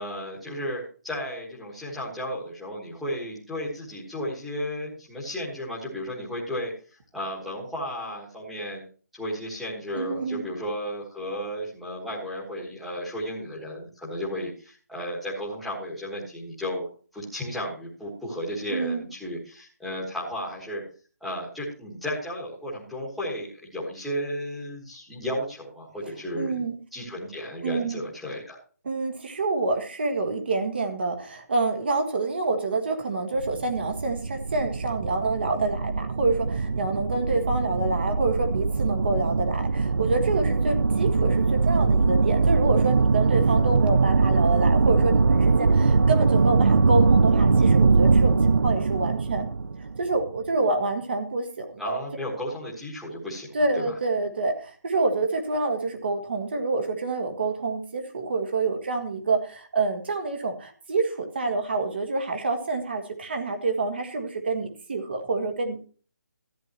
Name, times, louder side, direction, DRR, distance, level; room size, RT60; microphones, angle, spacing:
voice 1, 0.0-6.7 7.1-8.8 9.1-20.8 21.2-26.6 26.9-28.6 51.8-53.5 53.8-53.9, equal, ahead, -8 dB, 1.6 m, -34 dB
voice 2, 9.9-10.5 18.7-19.1 26.4-26.8 27.6-28.0 28.8-49.5 50.0-52.0 53.5-65.8, right 3 dB, 35° right, 6 dB, 1.6 m, -27 dB
sound 1, 33.3-50.4, right 4 dB, 65° right, 0.7 m, -22 dB
13.5 x 9.8 x 3.0 m, 0.39 s
hypercardioid pair, 180°, 9 cm